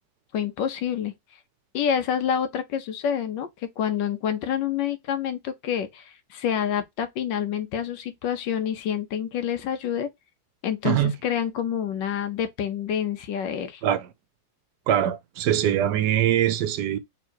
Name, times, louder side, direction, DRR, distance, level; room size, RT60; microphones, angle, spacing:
voice 1, 0.3-1.1 1.7-10.1 10.6-13.8, left 8 dB, 80° left, 1.4 m, -27 dB
voice 2, 10.8-11.1 13.8-14.1 14.9-17.0, right 11 dB, 70° right, 1.1 m, -23 dB
3.7 x 3.0 x 4.3 m
omnidirectional pair, 2.0 m